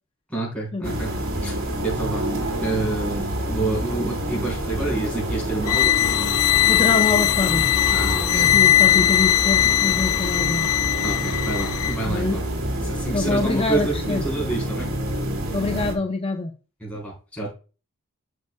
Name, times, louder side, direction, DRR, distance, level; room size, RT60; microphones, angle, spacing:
voice 1, 0.3-1.1 1.4-1.5 1.8-2.3 2.6-3.2 3.5-6.0 7.9-8.7 11.0-12.4 12.8-14.9 16.8-17.5, right 2 dB, 5° left, -5 dB, 4.0 m, -28 dB
sound 1, 0.8-15.9, right 1 dB, 75° right, 2.1 m, -28 dB
sound 2, 5.6-12.0, left 13 dB, 90° left, 0.4 m, -20 dB
voice 2, 6.7-7.6 8.0-10.7 12.0-12.4 13.1-14.2 15.5-16.5, left 3 dB, 25° left, 4 dB, 0.6 m, -25 dB
12.5 x 5.5 x 2.3 m, 0.34 s
head